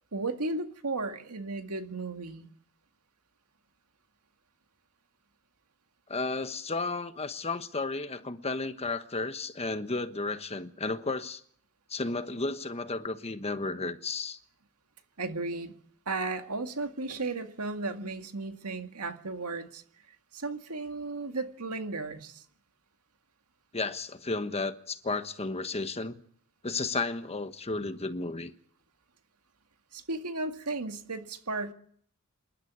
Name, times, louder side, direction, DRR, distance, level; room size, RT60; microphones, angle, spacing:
voice 1, 0.1-2.5 15.2-15.7 16.1-19.8 20.3-22.4 29.9-31.7, right 3 dB, 85° right, 2.0 m, -35 dB
voice 2, 6.1-11.4 11.9-14.4 23.7-26.2 26.6-28.5, left 3 dB, 30° left, 1.2 m, -33 dB
27.5 x 12.0 x 9.5 m
head